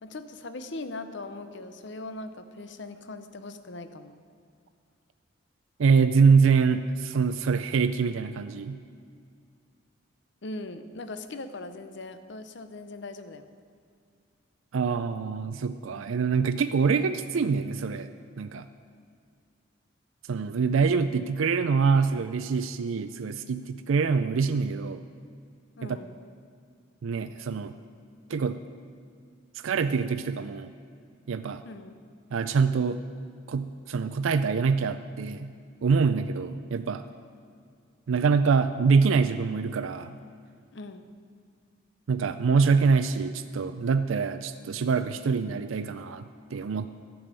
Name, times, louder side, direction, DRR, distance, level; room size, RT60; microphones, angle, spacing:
voice 1, 0.0-4.1 10.4-13.5 25.8-26.1 31.6-31.9 40.7-41.1, left 2 dB, 60° left, 10 dB, 0.7 m, -40 dB
voice 2, 5.8-8.8 14.7-18.1 18.4-18.7 20.3-25.0 25.8-26.0 27.0-27.8 28.3-28.6 29.5-30.7 31.3-31.6 32.3-33.0 33.5-35.5 35.8-37.0 38.1-40.2 42.1-46.3 46.5-46.9, right 5 dB, 80° right, 10 dB, 0.4 m, -25 dB
12.0 x 7.1 x 8.8 m, 2.3 s
head